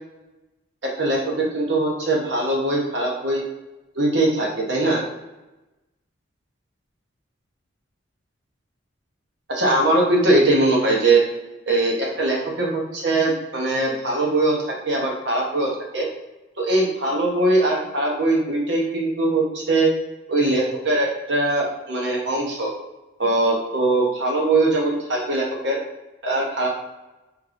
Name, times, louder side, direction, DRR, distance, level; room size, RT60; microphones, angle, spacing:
voice 1, 0.8-3.4 3.9-5.0 9.5-11.2 11.7-16.1 16.6-19.9 20.3-22.7 23.2-25.8 26.2-26.7, right 2 dB, 60° right, -2 dB, 1.0 m, -21 dB
5.0 x 3.2 x 2.5 m, 1.0 s
head